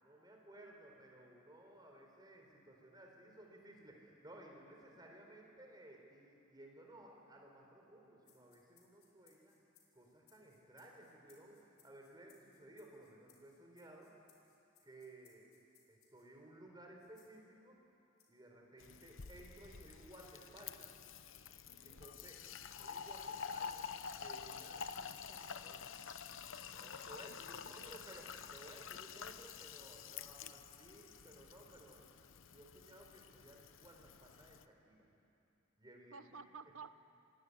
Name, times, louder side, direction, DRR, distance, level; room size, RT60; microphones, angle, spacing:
voice 1, 0.0-9.5 9.9-14.1 14.8-15.5 15.9-17.8 18.3-20.9 21.8-22.4 22.8-26.0 26.8-32.1 32.5-35.1 35.8-36.4, right 1 dB, 20° right, 1 dB, 4.3 m, -58 dB
sound 1, 8.2-16.4 17.0-17.4 18.2-18.5 19.2-19.3 20.2-20.3 21.2-21.4 22.2-22.3 23.2-23.4 24.2-24.4 25.1-25.3 26.2-26.4, left 8 dB, 85° left, 4.6 m, -71 dB
Fill (with liquid), 18.8-34.6, left 6 dB, 65° left, 0.9 m, -49 dB
voice 2, 21.7-22.0 27.6-28.3 36.1-37.0, right 5 dB, 70° right, 12 dB, 1.0 m, -54 dB
26.0 x 20.5 x 9.8 m, 2.7 s
head